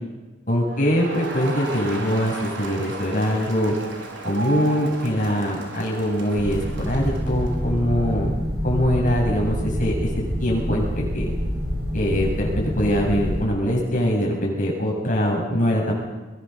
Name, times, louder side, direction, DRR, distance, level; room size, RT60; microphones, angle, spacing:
voice 1, 0.5-3.7 4.2-8.4 8.6-10.1 10.4-11.3 11.9-15.9, equal, 45° left, -2 dB, 7.6 m, -23 dB
Crowd, 0.7-7.7, right 2 dB, 85° right, 4.8 m, -35 dB
sound 1, 6.4-13.4, equal, 55° right, 7.5 m, -27 dB
23.5 x 22.0 x 6.9 m, 1.1 s
head